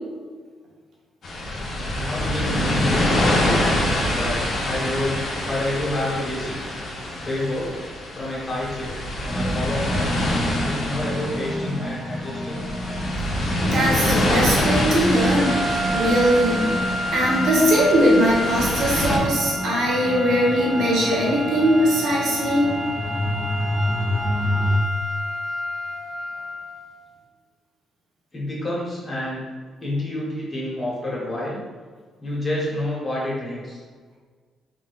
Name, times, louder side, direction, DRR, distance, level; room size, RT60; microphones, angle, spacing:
sound 1, 1.2-19.2, left 1 dB, 60° left, 0.9 m, -25 dB
voice 1, 1.9-3.6 4.1-6.7 7.2-7.8 8.1-8.9 9.3-10.3 10.6-12.6 28.3-29.4 29.8-31.6 32.2-33.8, left 1 dB, 30° left, -5 dB, 1.5 m, -28 dB
sound 2, 9.3-24.8, equal, 5° right, 0.4 m, -29 dB
voice 2, 13.6-16.8 17.1-22.7, equal, 75° right, -5 dB, 1.3 m, -20 dB
sound 3, 15.3-26.8, left 1 dB, 10° left, 1.2 m, -30 dB
3.8 x 3.6 x 2.6 m, 1.5 s
cardioid pair, 90°, 0 cm